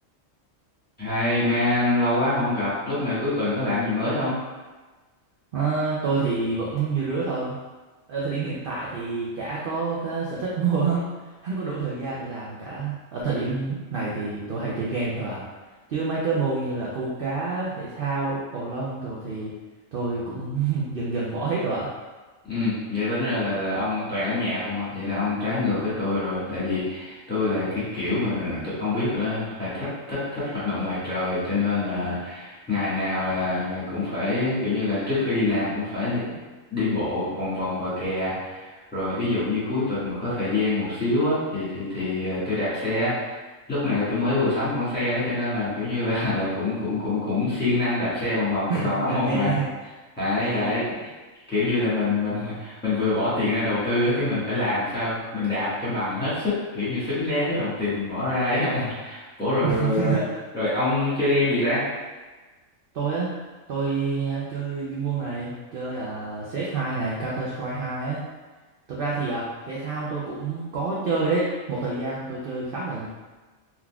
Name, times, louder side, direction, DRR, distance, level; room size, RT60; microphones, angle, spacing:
voice 1, 1.0-4.4 22.4-36.4 36.7-43.4 43.7-49.6 50.1-51.1 51.5-60.1 60.5-61.9, left 2 dB, 10° left, -12 dB, 1.4 m, -25 dB
voice 2, 5.5-7.6 8.1-11.1 11.4-15.4 15.9-19.5 19.9-21.9 48.7-49.7 50.4-50.7 59.6-60.2 62.9-63.3 63.7-68.2 68.9-73.1, right 4 dB, 55° right, -6 dB, 0.6 m, -28 dB
3.8 x 2.9 x 2.3 m, 1.3 s
omnidirectional pair, 1.4 m